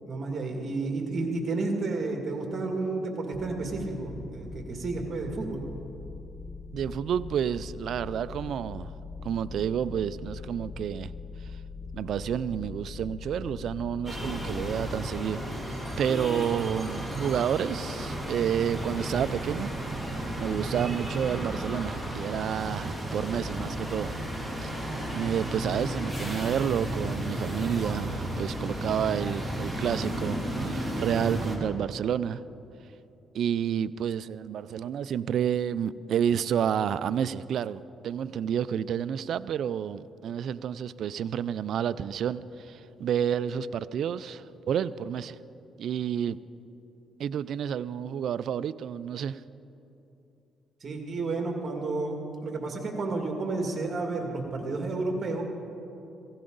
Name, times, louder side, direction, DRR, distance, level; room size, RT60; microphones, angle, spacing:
voice 1, 0.1-5.6 50.8-52.2 52.4-55.5, right 3 dB, 45° right, 2 dB, 2.2 m, -31 dB
sound 1, 3.3-16.6, left 4 dB, 35° left, 1.7 m, -42 dB
voice 2, 6.7-8.9 9.2-11.1 11.9-15.4 16.0-19.7 20.4-24.2 24.6-24.7 25.1-32.4 33.3-45.4 45.8-46.4 47.2-49.4, right 9 dB, 70° right, 15 dB, 0.4 m, -30 dB
sound 2, 14.1-31.6, right 1 dB, 5° left, 2.4 m, -33 dB
16.5 x 16.5 x 3.9 m, 2.9 s
cardioid pair, 90°, 0 cm